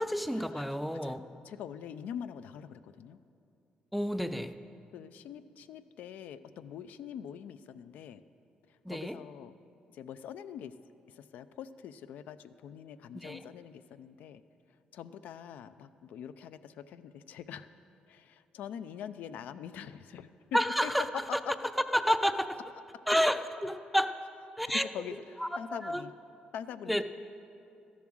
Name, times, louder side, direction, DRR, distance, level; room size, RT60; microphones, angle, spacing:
voice 1, 0.0-1.2 3.9-4.5 8.8-9.2 13.1-13.4 20.5-21.2 21.9-22.5 23.1-24.1 24.6-24.9 25.4-26.0 26.9-27.0, equal, ahead, 10 dB, 0.3 m, -30 dB
voice 2, 1.0-3.2 4.9-8.2 8.7-9.5 9.9-10.7 11.1-14.4 14.7-17.7 18.1-20.9 21.3-21.4 24.9-25.2 25.6-26.1 26.5-27.0, left 9 dB, 75° left, 13 dB, 0.4 m, -44 dB
13.0 x 7.1 x 6.2 m, 2.6 s
cardioid pair, 150°, 3 cm